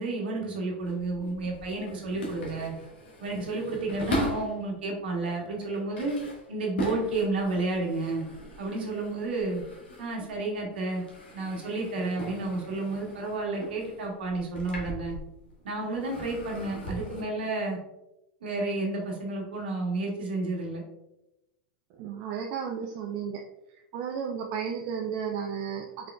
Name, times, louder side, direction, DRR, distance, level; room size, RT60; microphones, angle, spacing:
voice 1, 0.0-2.7 3.2-6.1 6.5-8.2 8.6-9.6 10.0-11.0 11.3-15.2 15.6-17.8 18.4-20.8, right 2 dB, 75° right, 0 dB, 1.3 m, -31 dB
sound 1, 0.7-4.6 5.2-10.4 10.7-15.6 15.9-17.2, equal, 80° left, 1.4 m, -39 dB
voice 2, 22.0-23.4 23.9-26.1, right 7 dB, 50° right, 2 dB, 0.5 m, -33 dB
4.7 x 3.8 x 2.3 m, 0.92 s
hypercardioid pair, 100°, 5 cm